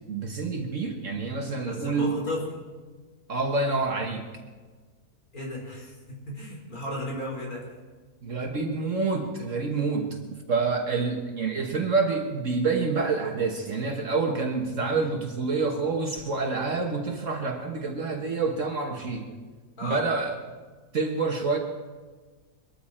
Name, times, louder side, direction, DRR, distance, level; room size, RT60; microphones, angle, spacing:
voice 1, 0.1-2.1 3.3-4.3 8.2-10.2 10.5-19.3 19.8-20.4 20.9-21.6, right 4 dB, 55° right, 3 dB, 1.6 m, -27 dB
voice 2, 1.6-2.4 5.3-7.7 19.8-20.0, left 1 dB, 70° left, -3 dB, 5.0 m, -34 dB
21.5 x 13.5 x 4.3 m, 1.4 s
omnidirectional pair, 1.6 m